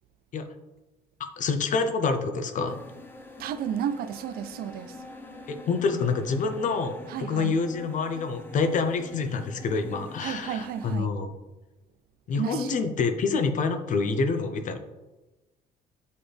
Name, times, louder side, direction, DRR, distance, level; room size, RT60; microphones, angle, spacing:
voice 1, 1.4-2.8 5.5-11.3 12.3-14.8, left 4 dB, 50° left, 0.7 m, -27 dB
sound 1, 2.7-11.0, left 2 dB, 10° left, 0.7 m, -45 dB
voice 2, 3.4-5.0 7.1-7.5 10.2-11.1 12.4-12.7, right 9 dB, 60° right, 0.4 m, -32 dB
7.7 x 4.1 x 3.3 m
cardioid pair, 110°, 17 cm